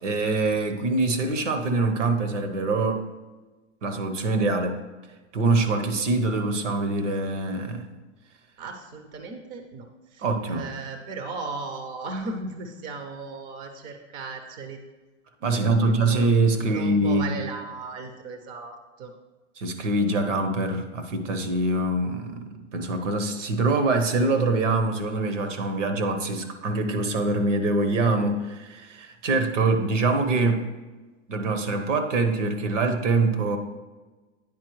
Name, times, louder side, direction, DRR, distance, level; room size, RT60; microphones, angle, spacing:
voice 1, 0.0-3.0 3.8-4.8 5.3-7.9 10.2-10.7 15.4-17.4 19.6-30.6 31.3-33.6, right 2 dB, 80° right, 7 dB, 1.0 m, -24 dB
voice 2, 8.6-14.8 15.5-19.1, right 3 dB, 25° right, 6 dB, 0.4 m, -36 dB
9.3 x 4.2 x 3.1 m, 1.2 s
hypercardioid pair, 125°, 36 cm